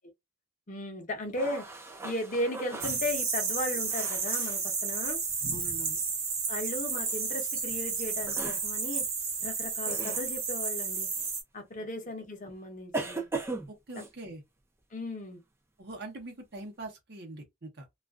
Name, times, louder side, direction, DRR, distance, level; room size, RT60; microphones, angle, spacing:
voice 1, 0.7-1.7 2.0-5.2 6.5-9.0 9.4-11.1 11.5-13.3 14.9-15.4, left 1 dB, 40° left, 0.7 m, -36 dB
sound 1, 1.4-4.6 7.0-7.2 8.2-8.6 9.9-10.3 11.2-11.3 12.9-14.1, right 3 dB, 10° right, 0.4 m, -38 dB
sound 2, 2.8-11.4, right 5 dB, 85° right, 0.9 m, -32 dB
voice 2, 5.5-6.0 11.8-11.9 13.7-14.4 15.8-17.9, right 2 dB, 50° right, 0.8 m, -43 dB
2.4 x 2.2 x 2.3 m
head